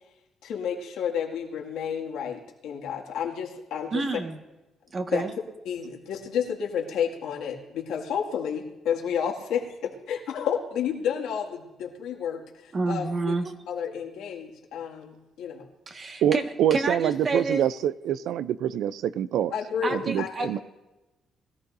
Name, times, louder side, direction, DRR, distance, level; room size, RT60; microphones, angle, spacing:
voice 1, 0.4-4.0 5.1-5.2 5.7-13.4 13.7-15.7 19.5-20.6, left 8 dB, 85° left, -1 dB, 2.2 m, -31 dB
voice 2, 3.9-4.4 4.9-5.3 12.7-13.5 15.9-16.4 16.7-17.6 19.8-20.6, right 3 dB, 40° right, 4 dB, 1.7 m, -29 dB
voice 3, 16.2-19.5 19.9-20.6, right 10 dB, 80° right, 16 dB, 0.4 m, -25 dB
21.5 x 14.0 x 2.7 m, 0.99 s
cardioid pair, 90°, 0 cm